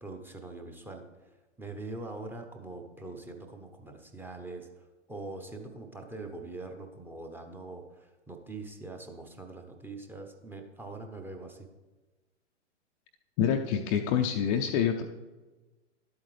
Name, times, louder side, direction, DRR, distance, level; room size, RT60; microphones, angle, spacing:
voice 1, 0.0-1.0 1.6-11.7, right 2 dB, 5° right, 3 dB, 0.7 m, -43 dB
voice 2, 13.4-15.0, left 8 dB, 30° left, 4 dB, 0.5 m, -26 dB
11.5 x 8.2 x 3.2 m, 1.2 s
figure-of-eight pair, 105°, 37 cm